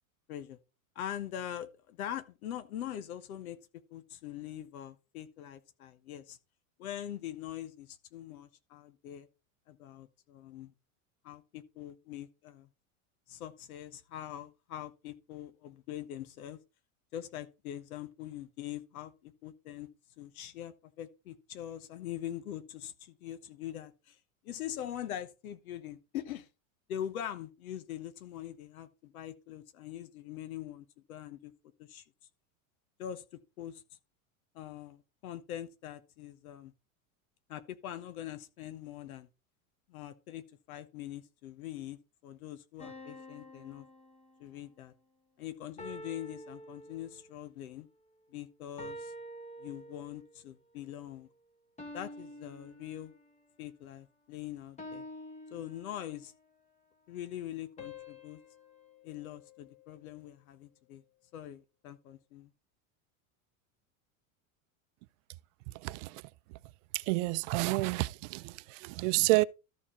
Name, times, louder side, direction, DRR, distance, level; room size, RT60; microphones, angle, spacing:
voice 1, 0.9-3.6 3.9-6.4 6.8-9.3 9.7-10.7 11.2-12.7 13.3-16.6 17.1-19.9 20.2-24.2 24.4-26.5 26.9-31.5 31.8-32.0 33.0-33.2 33.6-33.8 34.5-36.7 37.5-39.3 39.9-43.9 44.4-44.9 45.4-47.9 48.3-49.1 49.6-51.3 51.9-53.1 53.6-55.0 55.5-56.3 57.1-58.4 59.0-61.0 61.3-62.5, left 11 dB, 90° left, 1.2 m, -43 dB
sound 1, 42.8-44.7 45.8-47.4 48.8-50.4 51.8-53.5 54.8-56.4 57.8-60.1, left 1 dB, 15° left, 1.5 m, -48 dB
voice 2, 65.8-66.2 66.9-69.4, right 22 dB, 60° right, 0.6 m, -29 dB
13.5 x 4.5 x 4.3 m
supercardioid pair, 130°, 41 cm